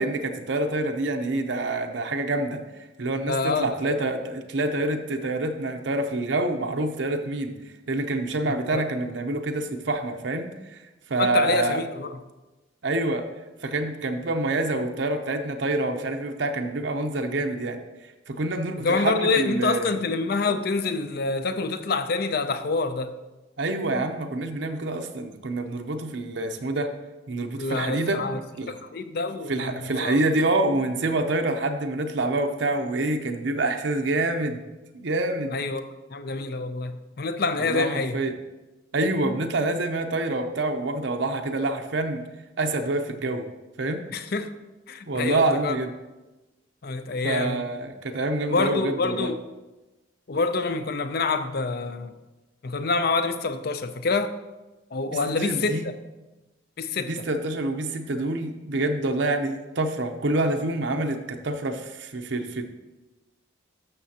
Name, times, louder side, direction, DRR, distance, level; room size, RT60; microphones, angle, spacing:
voice 1, 0.0-2.6 3.0-7.6 7.9-10.8 11.1-11.8 12.8-13.3 13.6-17.8 18.3-19.9 23.6-26.9 27.3-28.2 28.6-28.7 29.5-34.6 34.9-35.6 37.6-38.3 38.9-42.2 42.6-43.5 43.8-44.0 45.1-45.9 47.2-49.3 55.4-55.9 57.0-62.6, right 2 dB, 65° right, 5 dB, 0.6 m, -26 dB
voice 2, 3.3-4.0 8.5-8.9 11.2-12.2 18.8-23.1 27.6-28.4 28.7-30.2 35.5-38.2 44.1-44.5 44.9-45.8 46.8-47.6 48.5-49.4 50.3-52.1 52.6-54.4 54.9-56.0 56.8-57.3, left 3 dB, 50° left, 11 dB, 0.5 m, -27 dB
12.0 x 6.7 x 2.8 m, 1.1 s
head